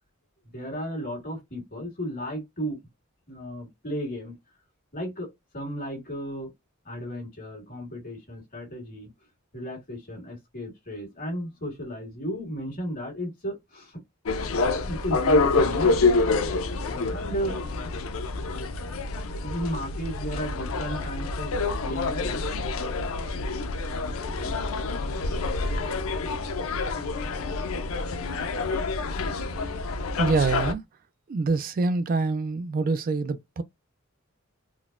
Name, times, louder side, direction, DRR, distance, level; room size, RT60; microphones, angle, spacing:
voice 1, 0.5-2.8 3.3-4.4 4.9-6.5 6.8-9.1 9.5-14.0 14.8-16.0 16.9-17.6 19.3-21.5 21.8-22.9 23.5-23.6 24.1-24.6, equal, 45° left, 1.8 m, -34 dB
sound 1, 14.3-30.7, left 3 dB, 85° left, 0.5 m, -27 dB
voice 2, 30.2-30.8 31.3-33.6, right 3 dB, 45° right, 0.4 m, -25 dB
3.9 x 2.1 x 2.4 m
head